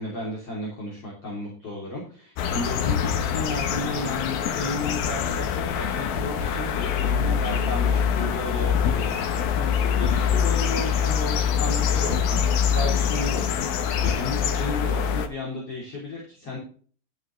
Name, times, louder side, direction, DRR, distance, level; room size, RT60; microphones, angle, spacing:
voice 1, 0.0-13.7 14.0-16.6, left 2 dB, 45° left, -4 dB, 4.1 m, -34 dB
sound 1, 2.4-15.3, left 7 dB, 90° left, 3.1 m, -24 dB
12.5 x 9.0 x 3.3 m, 0.42 s
omnidirectional pair, 4.1 m